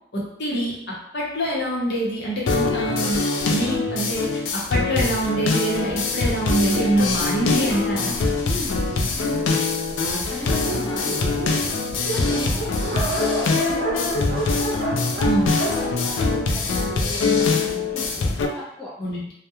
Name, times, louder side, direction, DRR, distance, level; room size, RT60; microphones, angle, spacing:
voice 1, 0.1-8.1 15.2-15.5 19.0-19.2, right 1 dB, 60° left, -4 dB, 0.8 m, -25 dB
sound 1, 2.5-18.5, left 3 dB, 90° left, 0.4 m, -23 dB
Dog, 6.1-9.1 9.8-9.9 10.2-10.3 10.5-16.9, right 1 dB, 55° right, 0.5 m, -31 dB
voice 2, 8.4-9.4 10.2-11.8 12.1-15.0 15.3-18.9, left 1 dB, 5° left, -7 dB, 0.4 m, -36 dB
2.3 x 2.1 x 2.9 m, 0.76 s
head